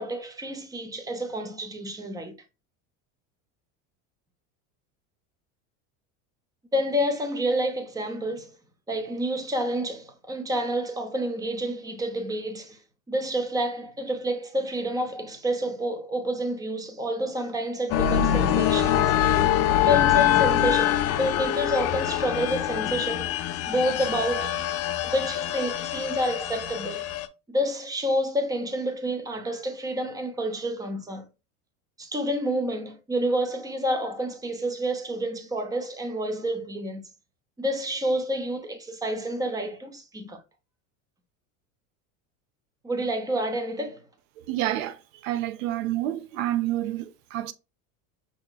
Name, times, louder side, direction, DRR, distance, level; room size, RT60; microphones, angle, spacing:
voice 1, 0.0-2.4 6.7-8.5 8.9-12.8 13.1-19.2 19.8-23.3 23.7-24.6 25.0-27.0 27.5-31.2 32.0-37.0 37.6-40.4 42.8-44.0, equal, 10° right, 0.6 m, -29 dB
sound 1, 17.9-27.3, left 11 dB, 40° left, 0.4 m, -24 dB
voice 2, 44.5-44.9 45.2-47.5, right 13 dB, 85° right, 0.6 m, -28 dB
5.3 x 2.8 x 2.3 m
supercardioid pair, 135°, 39 cm